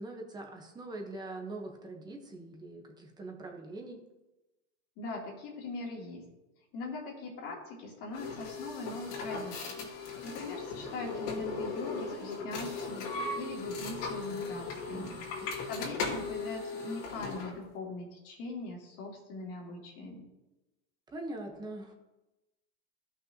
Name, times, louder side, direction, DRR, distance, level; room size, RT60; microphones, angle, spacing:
voice 1, 0.0-4.0 14.9-15.5 21.1-21.9, right 2 dB, 10° right, 2 dB, 1.0 m, -43 dB
voice 2, 5.0-6.2 6.7-20.3, left 2 dB, 40° left, -1 dB, 2.4 m, -41 dB
sound 1, 8.1-17.6, left 4 dB, 70° left, 2.7 m, -38 dB
15.5 x 5.9 x 2.9 m, 1.0 s
supercardioid pair, 160°, 37 cm